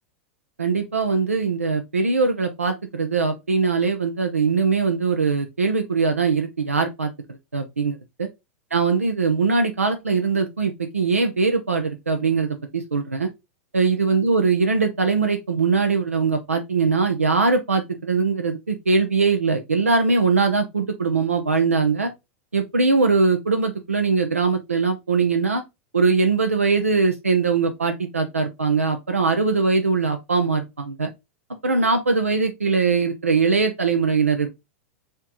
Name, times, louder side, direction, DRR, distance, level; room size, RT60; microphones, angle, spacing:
voice 1, 0.6-7.1 7.5-8.3 8.7-13.3 13.7-22.1 22.5-25.6 25.9-31.1 31.6-34.5, right 4 dB, 85° right, 0.6 m, -21 dB
4.4 x 3.0 x 3.6 m
figure-of-eight pair, 95°, 7 cm